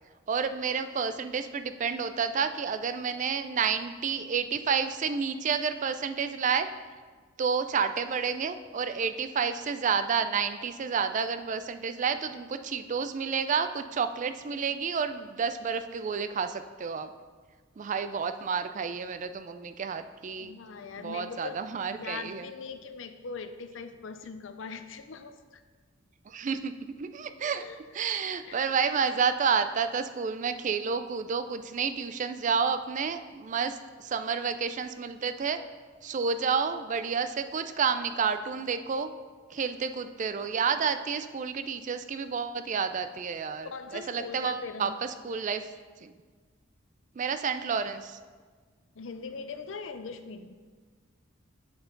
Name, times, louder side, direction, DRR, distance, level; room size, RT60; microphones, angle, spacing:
voice 1, 0.3-6.7 7.4-17.1 17.8-20.6 21.0-22.4 26.3-27.6 27.9-35.6 36.0-39.1 39.5-44.9 45.2-45.6 46.0-46.1 47.2-48.2, right 6 dB, 40° right, 10 dB, 0.4 m, -30 dB
voice 2, 20.4-21.6 21.9-25.6 27.4-27.8 28.4-28.7 43.6-45.0 48.9-50.6, left 4 dB, 70° left, 9 dB, 0.6 m, -41 dB
7.8 x 7.0 x 3.9 m, 1.5 s
head